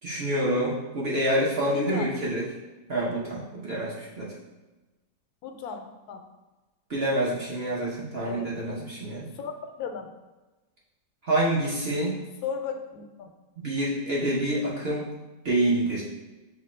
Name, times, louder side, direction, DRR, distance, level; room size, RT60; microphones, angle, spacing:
voice 1, 0.0-2.5 2.9-4.3 6.9-9.3 11.2-12.2 13.6-15.1 15.4-16.0, right 1 dB, 50° right, -6 dB, 0.9 m, -27 dB
voice 2, 1.5-2.1 5.4-6.2 8.2-8.5 9.3-9.5 9.8-10.1 12.4-13.3, left 6 dB, 75° left, 5 dB, 1.0 m, -35 dB
5.1 x 2.3 x 4.2 m, 1.1 s
omnidirectional pair, 1.7 m